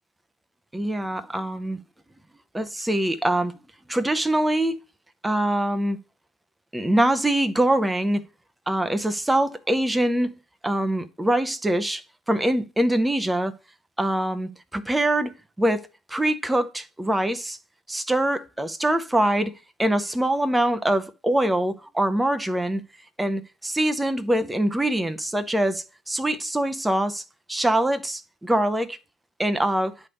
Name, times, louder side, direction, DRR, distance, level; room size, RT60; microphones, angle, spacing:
voice 1, 0.7-1.8 2.5-3.5 3.9-4.8 5.2-6.0 6.7-8.2 8.7-10.3 10.6-13.5 14.0-15.3 15.6-17.6 17.9-19.5 19.8-22.8 23.2-27.2 27.5-29.0 29.4-29.9, right 1 dB, 10° right, 0.8 m, -24 dB
9.6 x 3.4 x 5.2 m
hypercardioid pair, 60°, 0 cm